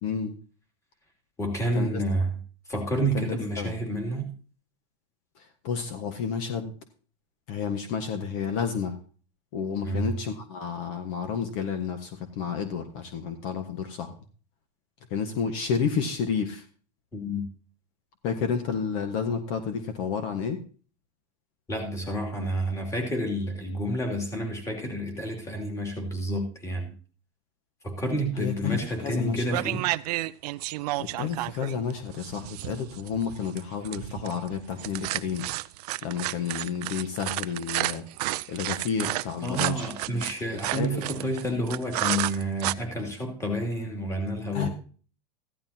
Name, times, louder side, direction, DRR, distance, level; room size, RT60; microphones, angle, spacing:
voice 1, 0.0-0.3 1.7-2.0 3.1-3.8 5.4-6.7 7.5-9.0 9.5-14.1 15.1-16.7 18.2-20.6 28.3-29.4 31.0-35.5 36.0-38.0 38.5-39.9 40.5-41.0 44.5-44.7, left 6 dB, 50° left, 7 dB, 1.5 m, -31 dB
voice 2, 1.4-2.3 2.7-4.3 9.8-10.1 17.1-17.5 21.7-26.9 27.8-29.8 39.4-44.7, right 1 dB, 15° left, 1 dB, 2.8 m, -29 dB
sound 1, 28.9-29.2 29.5-42.7, right 18 dB, 70° right, 0.5 m, -31 dB
15.0 x 12.0 x 2.9 m, 0.40 s
supercardioid pair, 150°, 21 cm